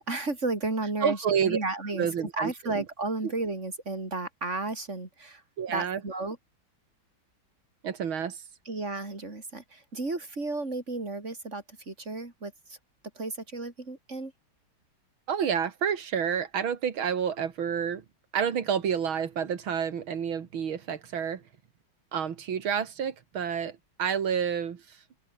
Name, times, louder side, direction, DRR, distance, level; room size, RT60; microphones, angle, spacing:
voice 1, 0.0-1.2 1.4-2.1 2.3-5.4 5.7-6.4 8.7-12.8 13.2-14.3, right 2 dB, 35° right, 4.9 m, -33 dB
voice 2, 1.0-1.6 1.9-2.8 5.6-6.0 7.8-8.4 15.3-18.0 18.3-21.4 22.1-25.0, right 7 dB, 90° right, 2.7 m, -29 dB
omnidirectional pair, 2.2 m